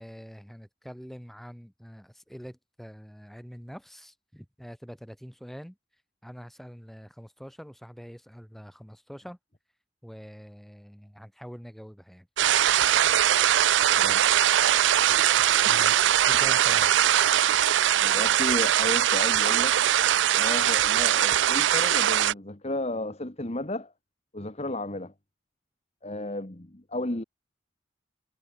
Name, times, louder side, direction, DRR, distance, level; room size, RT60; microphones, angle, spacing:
voice 1, 0.0-5.8 6.2-9.4 10.0-12.3 15.6-16.9, equal, ahead, 7.5 m, -45 dB
sound 1, 12.4-22.3, right 11 dB, 70° right, 0.4 m, -21 dB
voice 2, 18.0-19.8 20.4-23.9 24.3-25.1 26.0-27.2, left 1 dB, 35° left, 1.6 m, -33 dB
head